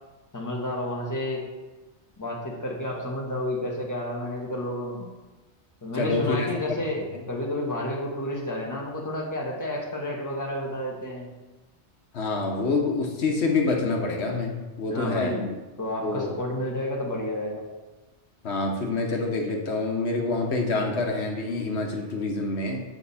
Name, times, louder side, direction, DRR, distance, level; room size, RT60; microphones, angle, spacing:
voice 1, 0.3-1.4 2.2-5.1 5.8-11.3 14.9-15.5 15.8-17.6, left 1 dB, 15° left, -2 dB, 1.4 m, -30 dB
voice 2, 5.9-6.5 12.1-15.4 16.0-16.3 18.4-22.8, left 3 dB, 80° left, 1 dB, 1.3 m, -26 dB
8.2 x 5.8 x 4.1 m, 1.2 s
omnidirectional pair, 1.1 m